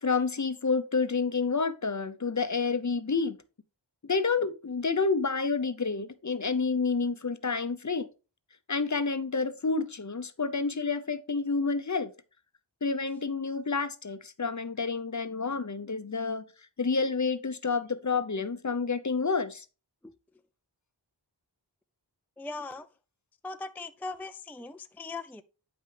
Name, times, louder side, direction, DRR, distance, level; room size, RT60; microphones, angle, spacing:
voice 1, 0.0-3.4 4.0-8.1 8.7-12.1 12.8-16.4 16.8-19.6, left 4 dB, 40° left, 0.7 m, -29 dB
voice 2, 22.4-22.9 23.4-25.4, left 3 dB, 5° left, 0.4 m, -39 dB
8.7 x 5.6 x 3.3 m
wide cardioid pair, 40°, 45 cm